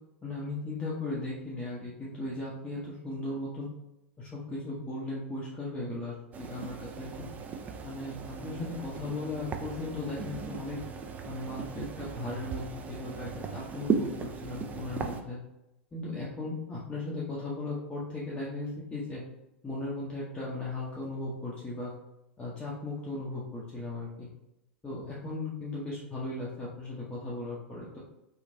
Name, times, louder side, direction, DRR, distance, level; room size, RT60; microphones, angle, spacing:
voice 1, 0.2-3.7 4.2-7.3 7.8-8.2 8.4-10.8 11.3-15.4 15.9-19.2 19.6-21.9 22.4-24.3 24.8-28.0, left 2 dB, 15° left, -6 dB, 0.6 m, -37 dB
sound 1, 6.3-15.2, right 5 dB, 25° right, 0.3 m, -37 dB
3.0 x 2.5 x 2.6 m, 0.91 s
figure-of-eight pair, 90°, 6 cm